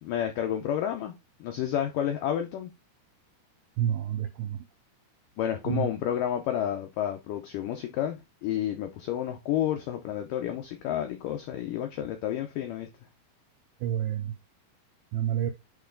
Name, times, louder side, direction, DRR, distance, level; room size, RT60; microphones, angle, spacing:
voice 1, 0.0-1.1 1.4-2.7 5.4-12.9, left 10 dB, 90° left, 1.8 m, -30 dB
voice 2, 3.8-4.7 5.7-5.9 13.8-14.4 15.1-15.5, right 10 dB, 90° right, 2.0 m, -29 dB
8.1 x 3.2 x 3.8 m
omnidirectional pair, 4.7 m